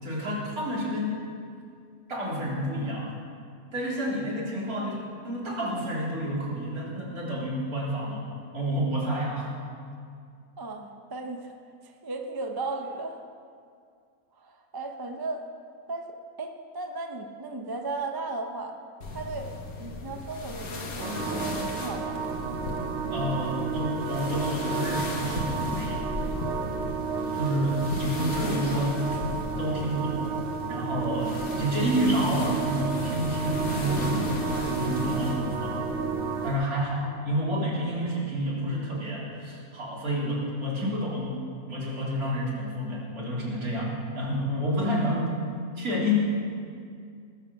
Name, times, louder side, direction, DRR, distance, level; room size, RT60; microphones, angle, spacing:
voice 1, 0.0-1.2 2.1-3.2 3.7-5.0 5.2-8.2 8.5-9.5 23.1-26.1 27.3-29.0 29.6-35.8 36.4-41.4 41.7-45.3 45.8-46.1, equal, 75° right, -5 dB, 3.9 m, -29 dB
voice 2, 10.6-11.5 11.8-13.2 14.4-15.5 15.9-18.8 19.1-22.2 28.2-28.3 40.1-40.4, right 3 dB, 20° right, 4 dB, 0.7 m, -36 dB
sound 1, 19.0-36.6, left 2 dB, 70° left, 1.9 m, -36 dB
sound 2, 21.0-36.5, right 6 dB, 55° right, 1.5 m, -32 dB
19.5 x 7.5 x 7.0 m, 2.2 s
omnidirectional pair, 1.6 m